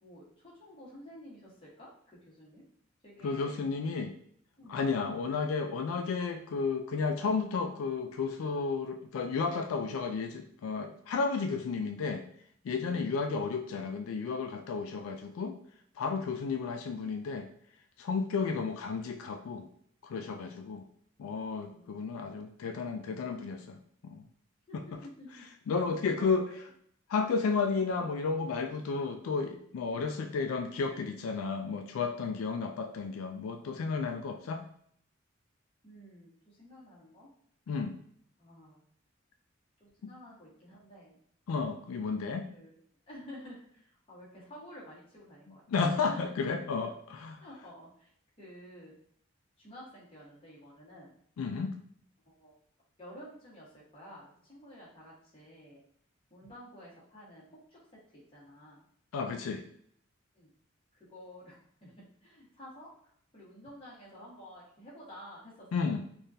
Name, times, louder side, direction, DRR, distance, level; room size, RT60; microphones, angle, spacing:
voice 1, 0.0-1.9 2.3-2.6 3.0-3.6 4.6-4.8 21.7-22.3 24.7-25.4 26.1-26.6 35.8-37.3 38.4-38.8 39.8-41.2 42.5-42.7 43.1-46.3 47.4-48.1 48.4-48.9 49.6-51.1 52.3-52.6 53.0-55.8 56.3-57.4 57.7-57.8 58.3-58.8 60.3-60.5 60.9-61.6 61.8-61.9 62.2-62.9 63.3-65.5, equal, 25° left, -7 dB, 1.2 m, -51 dB
voice 2, 3.2-4.1 4.7-12.2 12.6-15.6 16.0-17.5 18.0-19.7 20.0-20.8 21.2-23.8 24.0-24.2 24.7-25.0 25.3-26.4 27.1-34.6 37.7-38.0 40.0-40.1 41.5-42.5 45.7-47.4 51.4-51.7 59.1-59.6 65.7-66.0, left 4 dB, 90° left, 6 dB, 0.3 m, -32 dB
3.6 x 2.5 x 2.7 m, 0.65 s
head